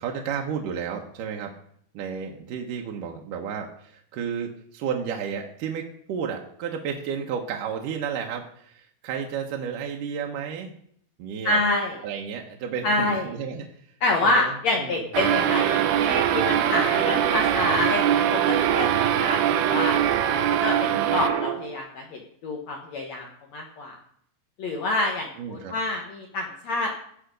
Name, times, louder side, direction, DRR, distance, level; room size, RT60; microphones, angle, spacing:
voice 1, 0.0-1.5 1.9-10.7 11.2-11.6 12.0-13.9 14.2-15.1 20.9-21.3 25.4-25.8, right 7 dB, 70° right, 1 dB, 2.2 m, -32 dB
voice 2, 11.4-12.0 12.8-13.3 14.0-20.0 20.3-23.2 23.5-24.0 24.6-26.9, left 2 dB, 65° left, 1 dB, 1.8 m, -27 dB
sound 1, 15.1-21.8, right 10 dB, 90° right, 2.7 m, -22 dB
16.5 x 5.7 x 5.1 m, 0.66 s
omnidirectional pair, 4.6 m